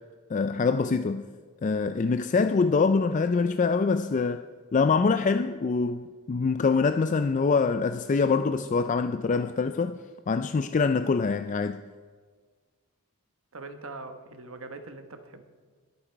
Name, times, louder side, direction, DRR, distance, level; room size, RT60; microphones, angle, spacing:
voice 1, 0.3-1.2 1.6-4.4 4.7-10.0 10.3-11.8, left 4 dB, 35° left, 0.3 m, -24 dB
voice 2, 13.5-15.4, right 3 dB, 65° right, 1.2 m, -42 dB
21.5 x 8.6 x 4.5 m
head